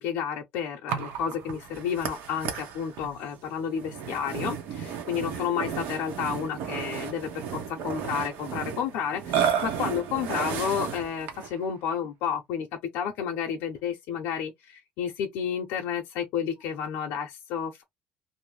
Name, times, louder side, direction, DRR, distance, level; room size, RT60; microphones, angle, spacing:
voice 1, 0.0-12.7 12.9-17.8, left 7 dB, 85° left, 0.6 m, -31 dB
Burping eructation, 0.9-11.6, right 8 dB, 75° right, 0.9 m, -33 dB
2.6 x 2.1 x 3.1 m
cardioid pair, 155°, 3 cm